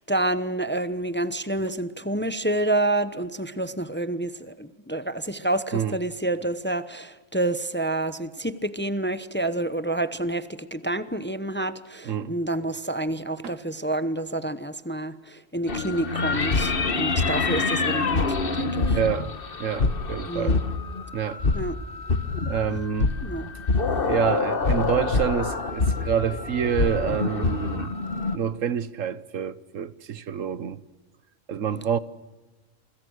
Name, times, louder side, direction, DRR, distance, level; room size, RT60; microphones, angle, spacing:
voice 1, 0.0-19.0 20.3-20.6 21.5-21.7 23.2-23.5, right 1 dB, 10° left, 0.8 m, -28 dB
sound 1, 15.7-28.4, left 4 dB, 45° left, 1.6 m, -26 dB
voice 2, 18.9-19.3 19.6-20.6 21.1-21.4 22.5-23.1 24.0-27.9 28.3-30.8 31.5-32.0, right 8 dB, 80° right, 1.4 m, -27 dB
29.0 x 25.5 x 6.4 m
omnidirectional pair, 1.3 m